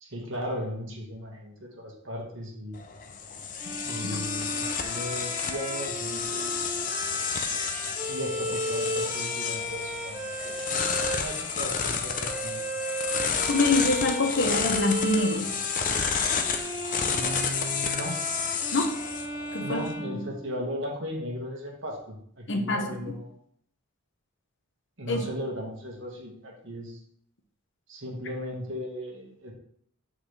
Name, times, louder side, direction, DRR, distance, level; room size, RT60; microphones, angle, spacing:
voice 1, 0.0-2.8 3.8-6.7 8.1-12.6 17.0-18.2 19.6-23.4 25.0-27.0 27.9-29.5, equal, 60° right, -1 dB, 1.6 m, -36 dB
sound 1, 2.7-19.9, left 6 dB, 35° left, 0.5 m, -31 dB
Bowed string instrument, 3.6-20.8, right 1 dB, 10° right, 0.9 m, -35 dB
voice 2, 13.5-15.5 18.7-19.0 19.5-19.8 22.5-22.9 25.1-25.2, left 2 dB, 55° left, 4 dB, 0.9 m, -25 dB
8.7 x 4.0 x 3.3 m, 0.65 s
head